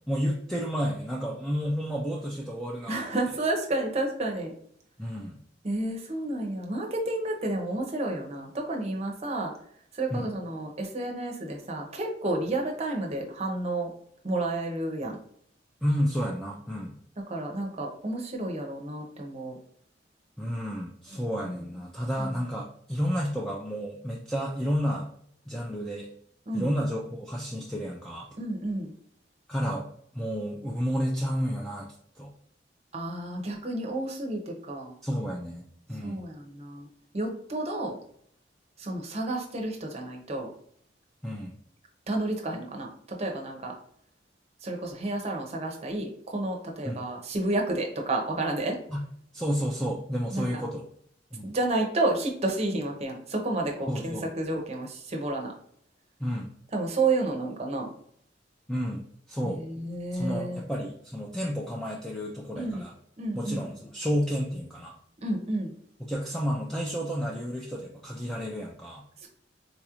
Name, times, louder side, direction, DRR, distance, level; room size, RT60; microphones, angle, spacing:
voice 1, 0.1-3.0 5.0-5.4 10.1-10.3 15.8-16.9 20.4-25.1 25.5-26.1 26.5-28.3 29.5-29.9 30.1-31.9 32.2-32.3 35.0-36.2 41.2-41.6 46.8-47.0 48.9-49.0 49.3-50.8 51.3-51.5 53.9-54.3 56.2-56.5 58.7-59.0 59.3-59.6 60.1-62.9 63.3-64.9 66.1-69.0, equal, ahead, -3 dB, 0.4 m, -31 dB
voice 2, 2.9-4.5 5.6-9.5 9.9-13.9 14.2-15.2 17.3-19.6 21.4-21.6 22.2-22.4 26.5-26.7 28.4-28.9 32.9-35.0 36.0-36.9 37.1-38.0 38.8-40.5 42.1-43.7 44.6-48.8 50.3-50.6 51.4-55.5 56.7-57.9 59.4-60.6 62.5-62.8 63.2-63.7 65.2-65.7 69.2-69.3, right 2 dB, 35° right, 1 dB, 0.7 m, -31 dB
4.0 x 2.4 x 2.9 m, 0.65 s
head